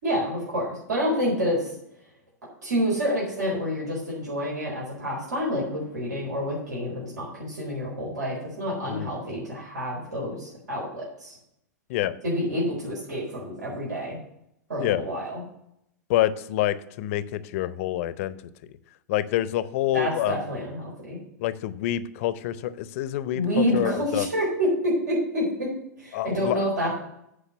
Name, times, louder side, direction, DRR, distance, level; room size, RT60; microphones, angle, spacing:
voice 1, 0.0-1.7 2.6-11.4 12.2-14.2 14.7-15.4 19.9-21.2 23.3-25.7 26.0-26.9, equal, 75° right, -4 dB, 4.2 m, -28 dB
voice 2, 16.1-18.3 19.1-20.4 21.4-24.3 26.1-26.7, left 13 dB, 50° left, 16 dB, 0.6 m, -27 dB
8.5 x 4.9 x 7.3 m, 0.77 s
hypercardioid pair, 105°, 9 cm